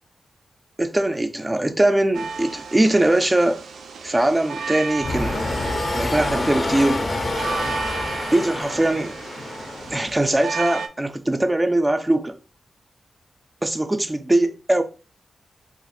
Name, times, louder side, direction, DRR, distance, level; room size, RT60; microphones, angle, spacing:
voice 1, 0.8-3.6 4.0-5.4 5.9-7.1 8.3-9.2 9.9-12.4 13.6-14.8, right 1 dB, 15° right, 0.4 m, -21 dB
sound 1, 2.1-10.9, right 5 dB, 90° right, 0.4 m, -33 dB
sound 2, 5.0-10.2, left 2 dB, 35° left, 0.5 m, -27 dB
2.5 x 2.4 x 4.0 m
wide cardioid pair, 105°, 0 cm